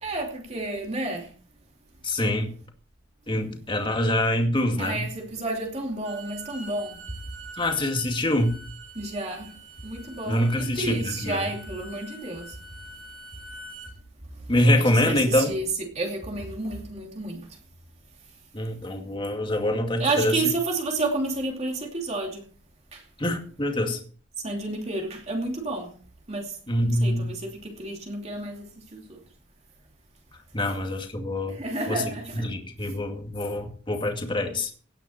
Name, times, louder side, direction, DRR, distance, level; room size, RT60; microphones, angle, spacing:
voice 1, 0.0-1.3 4.8-7.0 8.9-9.5 9.8-12.6 14.8-17.6 20.0-22.4 22.9-23.0 24.4-25.9 26.3-26.6 26.8-29.2 31.5-32.5, right 2 dB, 35° right, 2.8 m, -31 dB
voice 2, 2.0-2.5 3.3-5.0 7.6-8.6 10.3-11.4 14.5-15.5 18.5-20.3 23.2-24.0 26.7-27.3 30.5-31.6 31.9-32.0 32.4-34.7, left 1 dB, 25° left, 2.2 m, -25 dB
Bowed string instrument, 5.9-13.9, right 2 dB, 75° right, 6.4 m, -45 dB
17.0 x 10.5 x 4.3 m
head